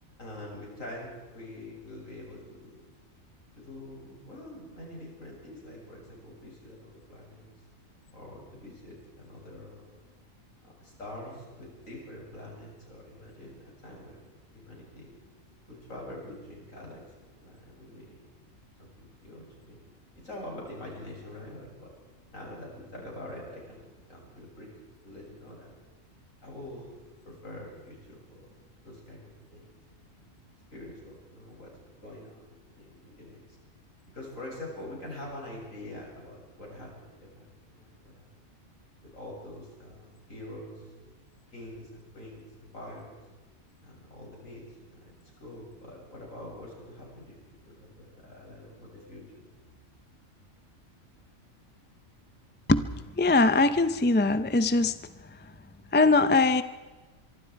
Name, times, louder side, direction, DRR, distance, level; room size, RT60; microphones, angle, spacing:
voice 1, 0.2-2.9 3.5-7.5 8.1-10.0 10.6-14.3 14.5-15.1 15.7-17.0 17.4-18.3 18.8-19.8 20.2-21.9 22.3-24.7 25.0-25.7 26.4-26.9 27.2-28.5 28.8-29.7 30.7-31.7 32.0-33.4 34.1-38.3 39.0-40.8 41.5-43.1 43.8-44.6 44.9-47.3 47.6-49.5, left 1 dB, 70° left, -2 dB, 7.8 m, -45 dB
voice 2, 53.2-55.0 55.9-56.6, left 3 dB, 10° left, 12 dB, 0.6 m, -21 dB
24.5 x 24.0 x 4.7 m, 1.3 s
omnidirectional pair, 1.4 m